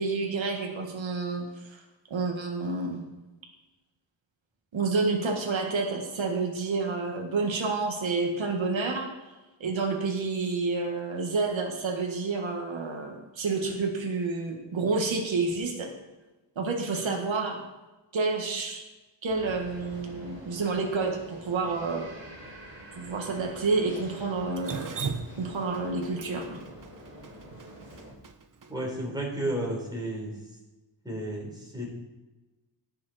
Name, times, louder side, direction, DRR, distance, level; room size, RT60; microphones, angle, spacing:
voice 1, 0.0-1.8 2.1-3.0 4.7-9.1 9.6-15.9 16.5-17.6 18.1-18.9 19.2-22.1 23.0-24.9 25.4-26.6, right 3 dB, 85° right, 2 dB, 1.7 m, -29 dB
sound 1, 19.3-28.1, right 1 dB, 25° right, 4.5 m, -46 dB
Drip, 24.6-28.7, right 5 dB, 45° right, 0.9 m, -37 dB
voice 2, 28.7-30.3 31.0-31.9, right 1 dB, 10° right, -2 dB, 4.0 m, -32 dB
18.0 x 6.4 x 4.3 m, 1.1 s
wide cardioid pair, 125°, 45 cm